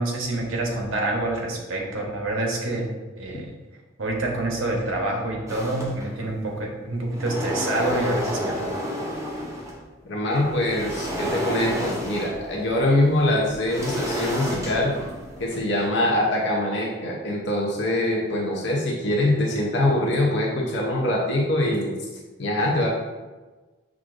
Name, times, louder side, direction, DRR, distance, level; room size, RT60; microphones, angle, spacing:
voice 1, 0.0-2.9 3.2-3.5 4.0-8.8, right 2 dB, 80° right, 0 dB, 0.9 m, -27 dB
sound 1, 5.5-6.4 6.9-9.8 10.3-15.9, equal, 15° right, 0.5 m, -31 dB
voice 2, 10.0-14.9 15.4-21.9 22.4-22.9, left 1 dB, 60° left, -2 dB, 0.7 m, -23 dB
6.1 x 2.4 x 2.5 m, 1.2 s
head